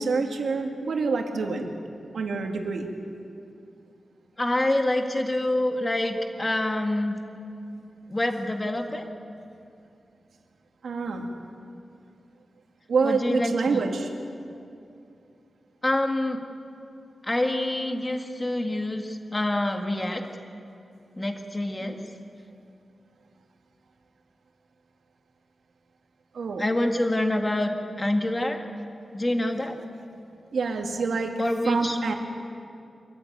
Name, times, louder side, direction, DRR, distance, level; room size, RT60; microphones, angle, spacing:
voice 1, 0.0-1.7 2.1-2.9 10.8-11.3 12.9-14.1 21.8-21.9 26.3-26.6 30.5-32.1, right 4 dB, 85° right, 3 dB, 2.3 m, -27 dB
voice 2, 4.4-7.2 8.1-9.1 13.0-13.9 15.8-16.4 17.2-20.3 21.2-22.0 26.6-27.7 28.0-28.6 29.1-29.8 31.4-32.0, left 1 dB, 20° left, 4 dB, 1.8 m, -26 dB
25.5 x 14.5 x 9.2 m, 2.5 s
wide cardioid pair, 150°, 0 cm